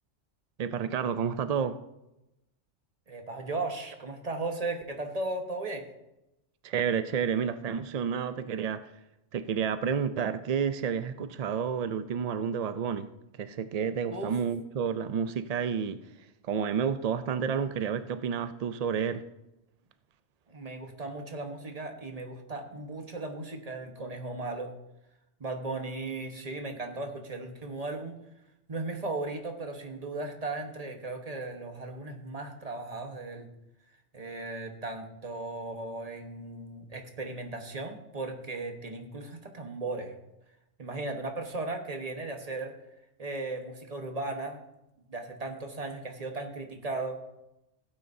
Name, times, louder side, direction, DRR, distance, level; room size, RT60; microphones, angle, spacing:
voice 1, 0.6-1.8 6.6-8.9 9.3-13.1 13.4-16.0 16.4-19.2, right 7 dB, 75° right, 11 dB, 0.3 m, -30 dB
voice 2, 3.1-5.9 14.1-14.3 20.5-24.7 25.4-28.1 28.7-33.5 34.1-40.1 40.8-42.7 43.2-44.6 45.1-47.2, right 2 dB, 35° right, 3 dB, 1.2 m, -36 dB
16.0 x 9.0 x 2.7 m, 0.90 s
omnidirectional pair, 1.2 m